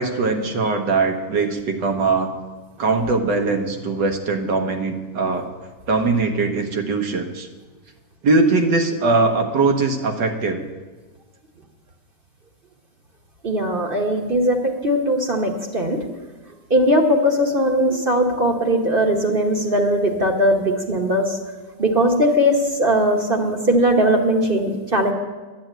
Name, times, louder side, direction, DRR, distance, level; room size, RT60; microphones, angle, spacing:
voice 1, 0.0-2.3 2.8-5.5 5.9-7.5 8.2-10.6, right 3 dB, 85° right, 4 dB, 1.9 m, -21 dB
voice 2, 13.4-16.0 16.7-21.4 21.8-25.1, equal, 35° right, 3 dB, 1.1 m, -19 dB
10.5 x 7.9 x 9.1 m, 1.3 s
omnidirectional pair, 1.9 m